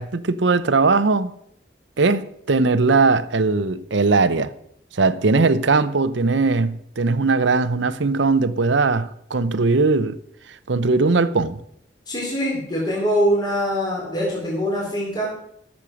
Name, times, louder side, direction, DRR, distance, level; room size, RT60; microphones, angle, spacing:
voice 1, 0.0-1.3 2.0-4.5 4.9-10.2 10.7-11.6, right 3 dB, 70° right, 0.7 m, -19 dB
voice 2, 12.1-15.3, equal, 20° left, 4.0 m, -23 dB
13.5 x 7.3 x 6.2 m
head